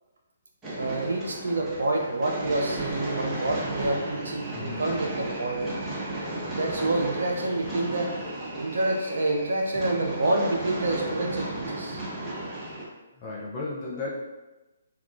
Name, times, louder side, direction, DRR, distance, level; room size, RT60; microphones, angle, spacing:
sound 1, 0.6-12.8, right 1 dB, 15° right, 0.8 m, -34 dB
voice 1, 0.8-5.7 6.5-8.1 8.5-12.0, right 2 dB, 70° right, 1 dB, 0.3 m, -28 dB
voice 2, 13.2-14.1, left 3 dB, 30° left, -5 dB, 0.5 m, -34 dB
2.9 x 2.2 x 2.5 m, 1.1 s
figure-of-eight pair, 135°, 0 cm